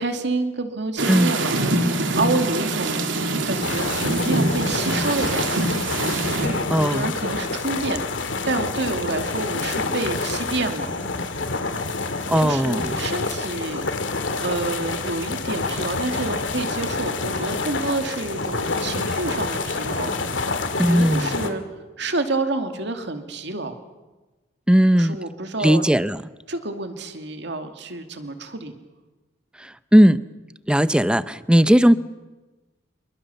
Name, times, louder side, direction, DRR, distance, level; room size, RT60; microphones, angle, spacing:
voice 1, 0.0-1.5 2.1-3.1 3.4-5.7 6.4-8.0 8.4-10.9 12.4-13.8 14.4-20.1 20.8-21.6 22.0-23.7 24.9-25.8 26.5-28.8, right 3 dB, 65° right, 6 dB, 2.5 m, -28 dB
sound 1, 1.0-6.5, right 2 dB, 85° right, 2.9 m, -24 dB
sound 2, 3.6-21.5, left 3 dB, 80° left, 2.3 m, -27 dB
voice 2, 6.7-7.1 12.3-13.0 20.8-21.3 24.7-25.2 25.6-26.2 29.6-30.2 30.7-32.0, equal, 5° right, 14 dB, 0.7 m, -17 dB
27.5 x 23.0 x 7.1 m, 1.2 s
head